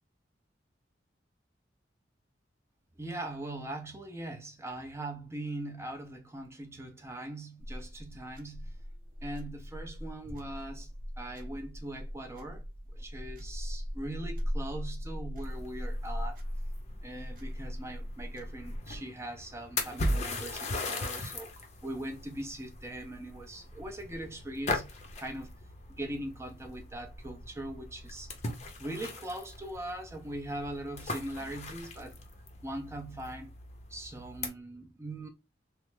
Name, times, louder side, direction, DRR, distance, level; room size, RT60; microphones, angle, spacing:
voice 1, 3.0-8.8 9.2-10.9 11.2-12.6 12.9-16.4 17.0-21.5 21.8-24.9 25.2-25.5 26.0-28.3 28.8-32.1 32.6-33.5 33.9-35.3, right 1 dB, 15° right, 0.5 m, -41 dB
sound 1, 7.6-18.8, equal, 50° right, 0.8 m, -39 dB
sound 2, 15.4-34.5, left 2 dB, 35° left, 0.6 m, -39 dB
3.2 x 2.0 x 3.1 m
head